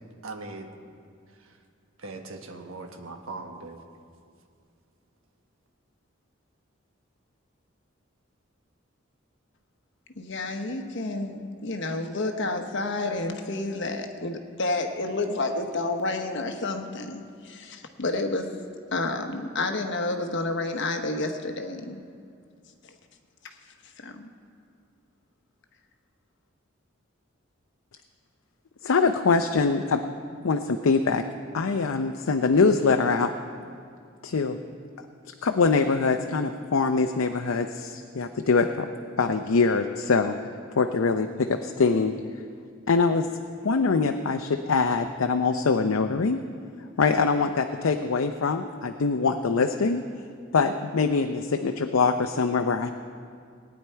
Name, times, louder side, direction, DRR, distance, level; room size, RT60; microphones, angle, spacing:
voice 1, 0.2-0.7 2.0-3.8, right 3 dB, 85° right, 4 dB, 1.2 m, -39 dB
voice 2, 10.2-18.6 18.9-22.0 24.0-24.3, left 2 dB, 60° left, 5 dB, 1.1 m, -30 dB
voice 3, 28.8-30.0 30.4-31.2 31.5-33.3 34.2-34.6 35.4-38.9 39.2-40.4 40.7-42.1 42.9-43.3 43.6-46.4 47.0-50.0 50.5-52.9, left 4 dB, 90° left, 6 dB, 0.6 m, -23 dB
18.5 x 9.7 x 4.6 m, 2.3 s
head